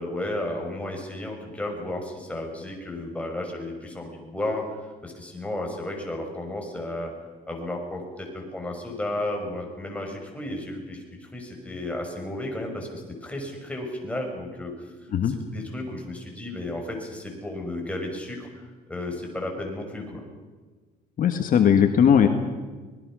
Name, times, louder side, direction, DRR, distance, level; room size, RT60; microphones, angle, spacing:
voice 1, 0.0-4.6 5.0-7.1 7.5-14.9 15.2-18.6 18.9-20.2, left 1 dB, 5° left, 1 dB, 5.9 m, -33 dB
voice 2, 21.2-22.3, left 8 dB, 55° left, 6 dB, 1.7 m, -18 dB
25.5 x 20.0 x 6.3 m, 1.4 s
cardioid pair, 110°, 17 cm